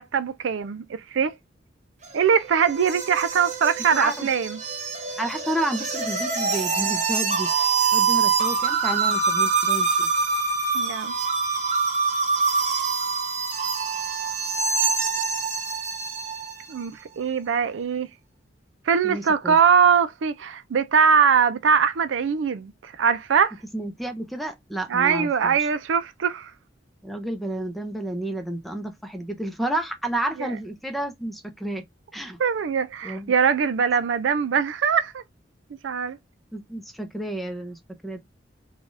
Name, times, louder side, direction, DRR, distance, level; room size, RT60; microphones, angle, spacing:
voice 1, 0.0-1.3 2.1-4.6 10.7-11.1 16.7-18.1 18.9-23.5 24.9-26.5 30.4-30.5 32.4-35.2 35.8-36.2, right 6 dB, 90° right, 0.4 m, -22 dB
sound 1, 2.0-16.6, right 5 dB, 40° right, 0.9 m, -25 dB
voice 2, 3.9-4.3 5.2-10.1 19.0-19.6 23.7-25.7 27.0-31.8 32.1-32.4 33.0-33.3 36.5-38.2, right 1 dB, ahead, 0.6 m, -31 dB
3.3 x 2.3 x 2.5 m
head